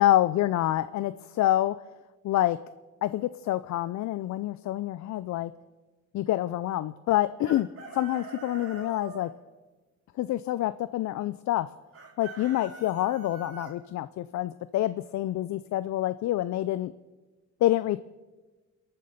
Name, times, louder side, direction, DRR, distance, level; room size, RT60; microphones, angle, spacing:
voice 1, 0.0-1.7 2.2-2.6 3.0-5.5 6.1-7.7 7.9-9.3 10.2-11.7 12.2-16.9 17.6-18.0, left 14 dB, 65° left, 14 dB, 0.5 m, -27 dB
Chicken rooster, 7.4-9.3 11.9-13.7, right 3 dB, 50° right, 4.0 m, -43 dB
27.0 x 9.2 x 5.7 m, 1.2 s
cardioid pair, 90°, 30 cm